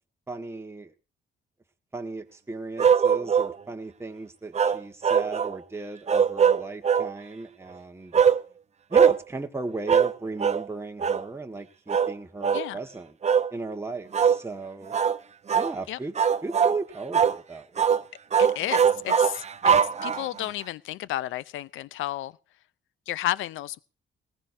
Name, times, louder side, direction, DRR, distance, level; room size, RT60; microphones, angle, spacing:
voice 1, 0.3-0.9 1.9-8.2 8.9-13.2 13.5-14.9 15.5-16.1 16.4-18.0, right 3 dB, 15° right, 1.5 m, -36 dB
sound 1, 2.8-3.5 4.5-5.6 6.1-7.1 8.1-8.4 8.9-9.2 9.9-10.1 10.4-10.6 11.0-11.2 11.9-12.1 12.4-12.7 13.2-13.5 14.1-14.4 14.9-15.2 15.5-15.7 16.2-16.8 17.1-17.4 17.8-18.0 18.3-20.4, right 7 dB, 35° right, 0.8 m, -21 dB
voice 2, 18.4-19.7 20.0-22.3 23.1-23.8, left 14 dB, 85° left, 0.6 m, -32 dB
19.5 x 15.0 x 2.7 m
cardioid pair, 90°, 20 cm